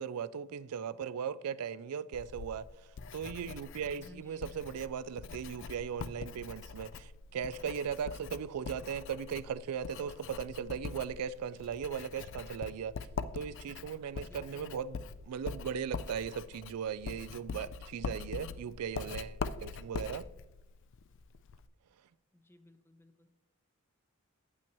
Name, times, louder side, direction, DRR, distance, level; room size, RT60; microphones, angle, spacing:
voice 1, 0.0-2.7 3.1-13.0 13.3-20.3, right 7 dB, 90° right, 0.4 m, -38 dB
Writing, 2.1-21.7, left 5 dB, 55° left, 0.4 m, -43 dB
voice 2, 4.0-4.5 14.2-14.7 22.3-23.3, left 1 dB, 10° left, 0.6 m, -58 dB
8.7 x 8.7 x 3.0 m
head